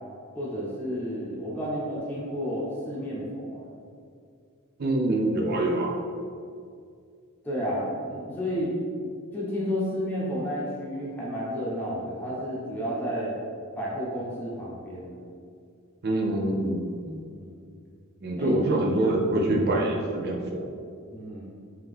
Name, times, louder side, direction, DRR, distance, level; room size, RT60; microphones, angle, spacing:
voice 1, 0.3-3.6 7.4-8.7 9.3-13.3 13.7-15.2 17.3-17.6 18.3-18.5 21.1-21.5, equal, 10° left, -7 dB, 0.9 m, -31 dB
voice 2, 4.8-6.0 16.0-17.2 18.2-20.7, right 1 dB, 50° right, 0 dB, 0.5 m, -25 dB
3.7 x 2.9 x 3.5 m, 2.3 s
head